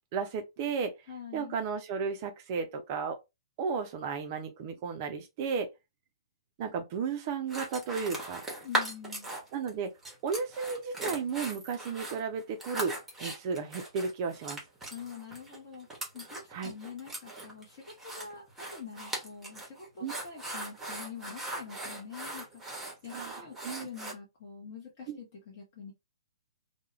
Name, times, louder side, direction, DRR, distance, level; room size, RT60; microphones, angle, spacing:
voice 1, 0.1-0.9 1.3-3.2 3.6-5.7 6.6-8.4 9.5-9.9 10.2-12.9 13.2-14.6 16.5-16.7 20.0-20.1 23.1-23.9 25.1-25.2, right 5 dB, 30° right, 0.4 m, -34 dB
voice 2, 1.1-1.6 8.6-9.3 14.9-25.9, left 6 dB, 35° left, 0.8 m, -46 dB
sound 1, 7.5-9.7 10.0-24.1, right 1 dB, 5° right, 0.8 m, -39 dB
2.2 x 2.1 x 2.9 m
figure-of-eight pair, 120°, 3 cm